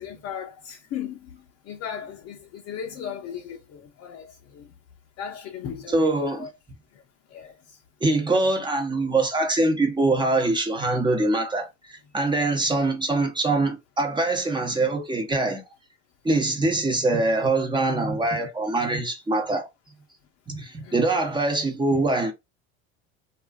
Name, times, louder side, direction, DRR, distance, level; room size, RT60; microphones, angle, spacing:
voice 1, 0.0-4.7 5.2-6.5 7.3-7.8 20.8-21.0, left 8 dB, 45° left, 0.6 m, -37 dB
voice 2, 5.9-6.5 8.0-15.6 16.2-19.7 20.5-22.3, right 2 dB, 15° right, 0.8 m, -23 dB
2.4 x 2.3 x 2.3 m
hypercardioid pair, 90°, 32 cm